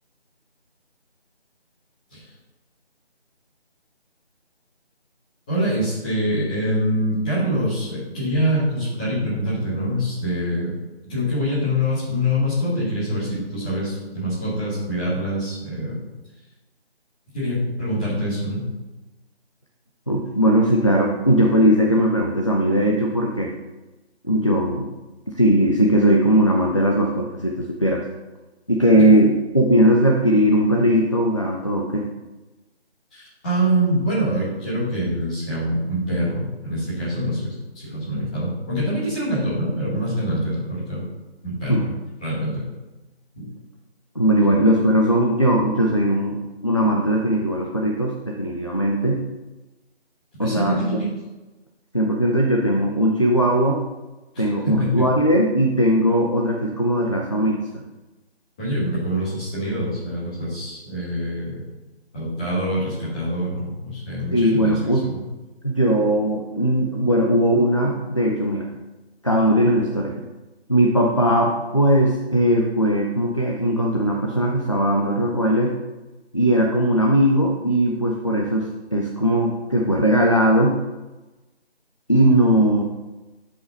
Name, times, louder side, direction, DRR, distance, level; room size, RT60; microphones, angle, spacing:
voice 1, 5.5-10.7 11.1-16.0 17.3-18.7 29.0-29.1 33.1-37.5 37.8-41.0 41.4-41.9 42.2-42.7 43.4-43.5 50.4-51.1 54.3-55.0 58.6-61.6 62.1-65.2, equal, 5° left, -12 dB, 1.4 m, -25 dB
voice 2, 20.1-23.5 24.2-24.9 25.3-28.0 28.7-32.1 41.7-41.9 44.2-49.2 50.4-50.8 51.9-53.8 54.4-57.8 64.3-65.0 65.6-68.7 69.2-70.1 70.7-75.7 76.3-80.8 82.1-82.8, right 1 dB, 30° left, -1 dB, 0.5 m, -19 dB
9.5 x 4.9 x 4.0 m, 1.1 s
figure-of-eight pair, 165°, 32 cm